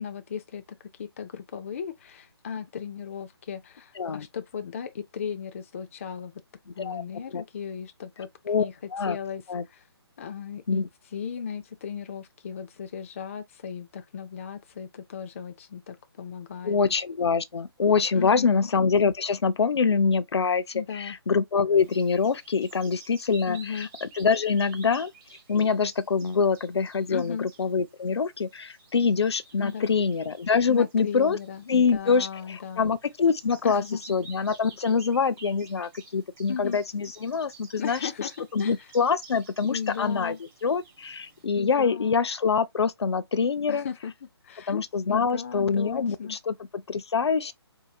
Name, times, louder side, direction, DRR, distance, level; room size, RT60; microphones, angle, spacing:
voice 1, 0.0-6.3 6.7-8.3 8.6-8.7 9.1-9.9 10.2-10.8 11.1-16.8 18.1-18.6 20.7-21.2 23.5-23.9 27.1-27.5 29.6-29.9 30.7-32.9 33.6-34.0 36.5-36.8 37.8-38.9 39.7-40.4 41.6-42.2 43.7-44.1 44.4-44.8 45.1-46.4, left 7 dB, 30° left, 0.4 m, -36 dB
voice 2, 4.0-4.3 6.8-7.0 7.3-7.4 8.5-8.7 8.9-9.2 9.5-9.6 10.7-10.9 16.6-25.1 25.5-31.4 31.7-33.8 34.1-40.4 40.6-43.9 44.7-47.5, left 5 dB, 75° left, 0.6 m, -25 dB
Bird vocalization bird call bird song, 21.8-41.5, right 4 dB, 15° right, 1.3 m, -52 dB
4.6 x 2.8 x 2.3 m
hypercardioid pair, 160°, 14 cm